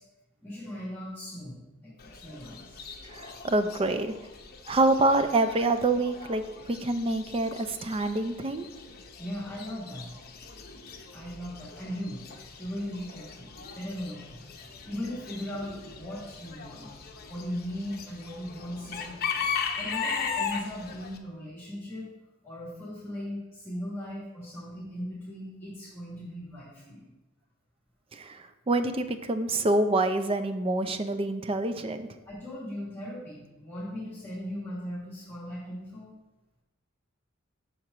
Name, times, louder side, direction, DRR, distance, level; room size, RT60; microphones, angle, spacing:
voice 1, 0.4-2.8 9.2-10.1 11.1-12.2 12.6-13.5 13.7-14.4 14.9-16.9 17.3-22.1 22.4-27.1 32.3-36.1, equal, 10° left, -8 dB, 1.7 m, -38 dB
Chicken rooster / Bird, 2.0-21.2, left 6 dB, 45° left, 0.7 m, -39 dB
voice 2, 3.1-4.1 4.7-8.7 28.1-32.1, right 2 dB, 25° right, 9 dB, 0.4 m, -26 dB
6.5 x 4.5 x 4.9 m, 1.0 s
head